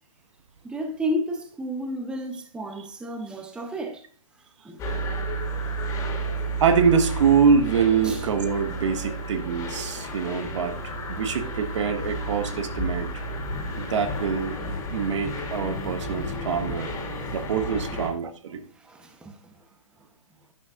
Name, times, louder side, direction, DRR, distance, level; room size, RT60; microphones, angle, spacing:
voice 1, 0.6-4.1 4.6-4.8 8.0-8.3 17.2-17.4 17.9-18.0 18.7-19.7 20.0-20.1, equal, 5° right, 0.8 m, -32 dB
sound 1, 4.8-18.1, right 1 dB, 15° left, 2.5 m, -32 dB
voice 2, 6.6-13.2 13.8-14.6 14.9-17.0 17.3-18.6, right 6 dB, 55° right, 1.5 m, -24 dB
12.0 x 8.6 x 2.5 m
hypercardioid pair, 145°, 18 cm